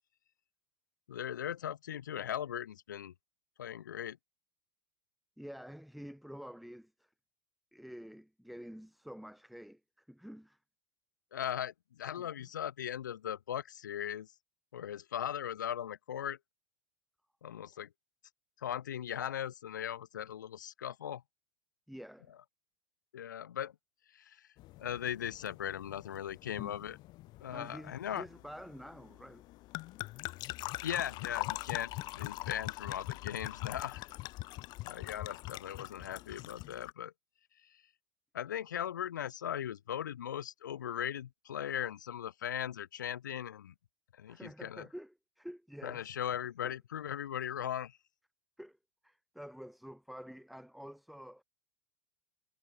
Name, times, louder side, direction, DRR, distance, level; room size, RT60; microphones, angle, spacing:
voice 1, 1.1-3.1 3.6-4.2 11.3-14.3 14.7-16.4 17.4-17.9 18.6-21.2 23.1-23.7 24.1-24.5 24.8-27.0 27.4-28.3 30.8-34.0 34.8-37.1 37.7-37.8 38.3-43.7 44.1-44.9 45.8-48.0, left 10 dB, 75° left, 1.0 m, -39 dB
voice 2, 5.4-7.1 7.7-10.6 12.2-12.5 21.9-22.3 27.5-29.4 44.3-46.1 46.6-46.7 48.6-48.8 49.0-51.4, equal, ahead, 3.6 m, -49 dB
sound 1, 24.6-36.9, left 18 dB, 45° left, 4.0 m, -43 dB
hypercardioid pair, 95°, 10 cm